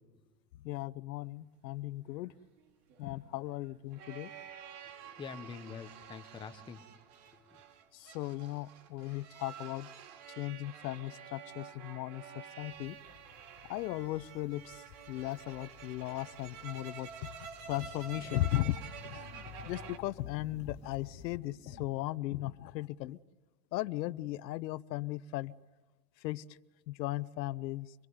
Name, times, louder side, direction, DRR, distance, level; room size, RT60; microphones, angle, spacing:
voice 1, 0.6-2.3 3.0-4.3 7.9-9.9 10.4-13.0 13.7-17.3 17.7-19.3 19.6-23.2 23.7-25.5 26.2-26.4 26.9-27.9, left 16 dB, 80° left, 16 dB, 0.9 m, -37 dB
sound 1, 2.2-20.0, right 7 dB, 60° right, 2.3 m, -49 dB
voice 2, 4.8-6.8 7.3-7.6, left 6 dB, 10° left, 6 dB, 0.8 m, -46 dB
sound 2, 12.6-21.3, left 11 dB, 40° left, 1.1 m, -54 dB
sound 3, 16.1-21.9, right 6 dB, 25° right, 1.8 m, -63 dB
26.0 x 19.5 x 9.5 m, 1.2 s
supercardioid pair, 160°, 50 cm